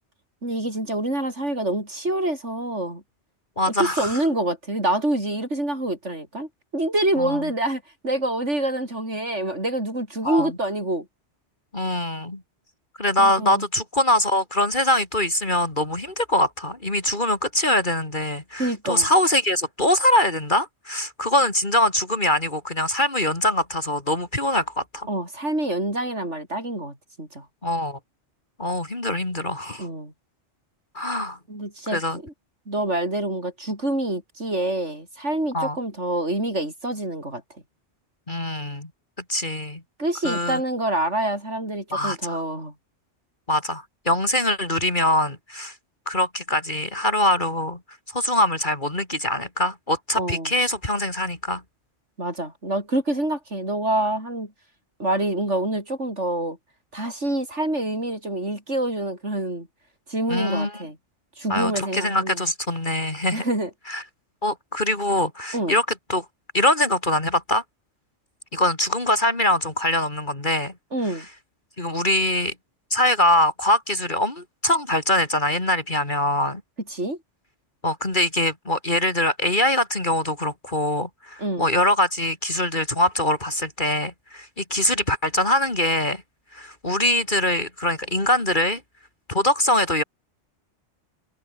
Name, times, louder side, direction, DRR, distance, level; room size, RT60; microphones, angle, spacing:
voice 1, 0.4-3.0 3.7-11.1 13.2-13.6 18.6-19.1 25.1-27.5 29.8-30.1 31.5-32.3 32.7-37.4 40.0-42.7 50.2-50.5 52.2-54.5 55.0-56.6 56.9-59.7 60.1-61.0 61.4-62.5 63.3-63.7 65.5-65.8 70.9-71.3 76.9-77.2 81.4-81.7, right 1 dB, 80° right, 8.6 m, -26 dB
voice 2, 3.6-4.2 7.2-7.4 10.2-10.5 11.7-12.4 13.0-25.1 27.6-28.0 28.6-29.9 31.0-31.4 31.9-32.2 35.5-35.8 38.3-38.9 39.3-39.8 40.2-40.6 41.9-42.4 43.5-45.7 46.1-47.8 48.1-51.6 60.3-60.8 61.5-63.4 63.9-64.0 64.4-66.3 66.5-67.6 68.5-70.7 71.8-72.5 72.9-76.6 77.8-86.2 86.5-88.8 89.3-90.0, left 1 dB, 45° left, 3.6 m, -23 dB
omnidirectional pair, 1.2 m